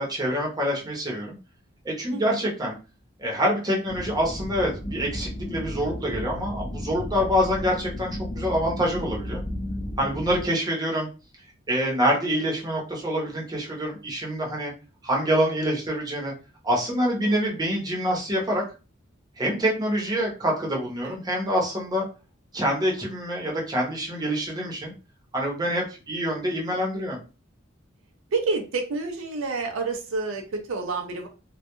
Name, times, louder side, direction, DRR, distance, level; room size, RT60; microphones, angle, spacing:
voice 1, 0.0-1.4 1.8-2.7 3.2-9.4 10.0-11.1 11.7-14.7 15.0-16.3 16.6-18.6 19.4-22.0 22.5-24.9 25.3-27.2, equal, 20° right, -2 dB, 0.7 m, -26 dB
voice 2, 2.1-2.5 17.2-17.6 21.0-21.2 28.3-31.3, right 3 dB, 75° right, 4 dB, 0.5 m, -29 dB
sound 1, 3.9-10.5, left 1 dB, 25° left, 0.4 m, -34 dB
2.2 x 2.1 x 2.9 m, 0.33 s
head